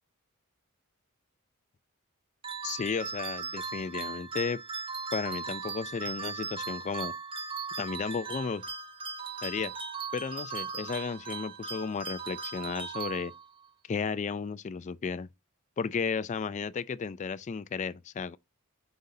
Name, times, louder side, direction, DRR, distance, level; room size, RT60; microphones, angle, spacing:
sound 1, 2.4-13.7, right 5 dB, 25° right, 1.0 m, -38 dB
voice 1, 2.6-4.6 5.1-7.1 7.8-8.6 9.4-9.7 10.1-13.3 13.9-15.3 15.8-18.4, left 5 dB, 35° left, 0.3 m, -33 dB
8.0 x 5.2 x 2.7 m
head